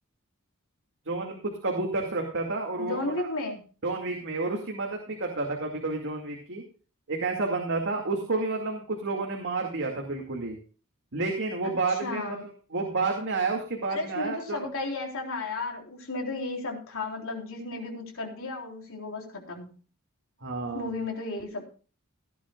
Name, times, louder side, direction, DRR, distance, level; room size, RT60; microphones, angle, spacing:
voice 1, 1.1-3.3 3.8-6.6 7.1-10.6 11.1-12.4 12.7-14.6 20.4-20.9, right 3 dB, 55° right, 1 dB, 2.3 m, -30 dB
voice 2, 2.8-3.6 11.6-12.4 13.9-19.8 20.7-21.7, left 3 dB, 65° left, 1 dB, 3.8 m, -34 dB
17.0 x 11.0 x 2.4 m, 0.38 s
head